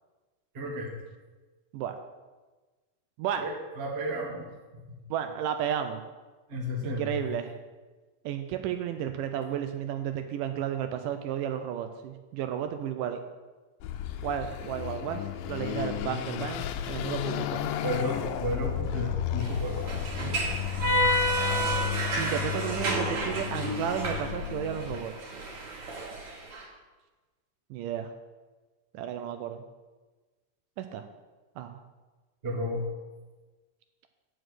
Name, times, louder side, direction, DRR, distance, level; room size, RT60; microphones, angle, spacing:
voice 1, 0.5-0.9 3.4-4.5 4.9-5.0 6.5-7.2 17.8-19.8 32.4-32.8, left 1 dB, 35° right, -1 dB, 0.9 m, -32 dB
voice 2, 5.1-6.0 6.8-7.5 8.3-13.2 14.2-17.6 22.2-25.1 27.7-28.1 28.9-29.6 30.8-31.0 31.6-31.8, right 9 dB, 80° right, 7 dB, 2.1 m, -33 dB
Car passing by / Accelerating revving vroom, 13.8-25.0, left 10 dB, 85° left, 2.2 m, -33 dB
sound 1, 19.4-26.6, right 1 dB, 55° right, 3.0 m, -30 dB
8.8 x 6.3 x 6.3 m, 1.3 s
omnidirectional pair, 4.0 m